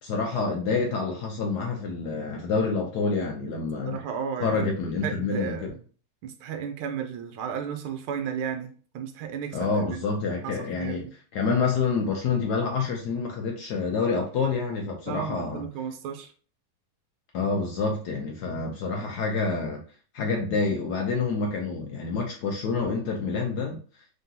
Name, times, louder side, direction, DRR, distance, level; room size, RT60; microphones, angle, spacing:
voice 1, 0.0-4.0 4.4-5.7 9.5-11.1 11.3-15.6 17.3-19.8 20.1-23.8, left 4 dB, 70° left, 1 dB, 1.0 m, -27 dB
voice 2, 3.9-4.7 5.0-5.8 6.2-10.0 10.4-11.1 15.1-16.3, right 7 dB, 80° right, 6 dB, 1.5 m, -34 dB
3.8 x 3.7 x 2.8 m, 0.40 s
omnidirectional pair, 2.3 m